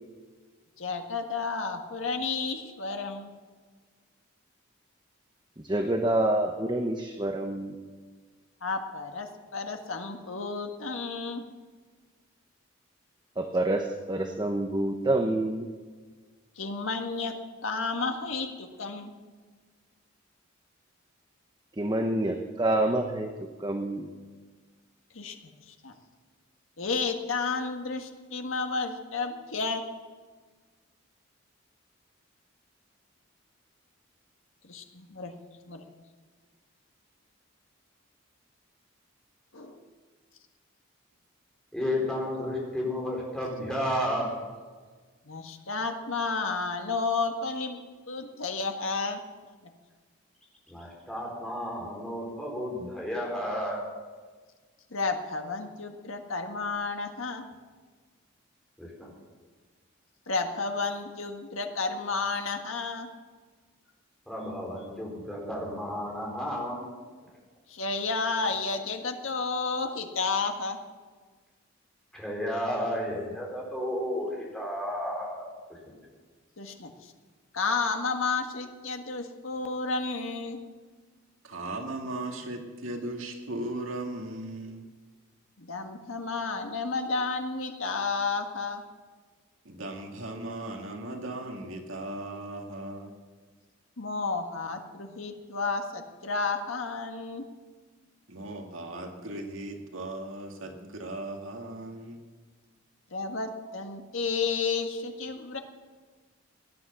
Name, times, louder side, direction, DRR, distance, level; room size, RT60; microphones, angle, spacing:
voice 1, 0.8-3.3 8.6-11.4 16.6-17.4 17.6-19.1 25.1-25.3 25.7-25.9 26.8-29.8 34.6-34.7 35.2-35.3 35.7-35.8 39.5-39.8 45.2-47.8 48.1-49.2 54.9-57.4 60.3-63.1 67.7-70.8 76.6-77.1 77.5-80.6 85.6-88.8 94.0-97.5 103.1-105.6, left 4 dB, 80° left, 4 dB, 1.7 m, -31 dB
voice 2, 5.6-7.8 13.4-15.7 21.8-23.3 23.6-24.1, right 1 dB, 20° right, 4 dB, 0.9 m, -27 dB
voice 3, 41.7-44.3 50.7-53.8 58.8-59.1 64.3-66.9 67.2-67.3 72.1-75.4 75.7-75.8, equal, 5° left, -3 dB, 4.1 m, -32 dB
voice 4, 81.4-84.8 89.6-93.2 98.3-102.2, right 2 dB, 80° right, 3 dB, 2.1 m, -37 dB
17.5 x 10.5 x 6.9 m, 1.4 s
head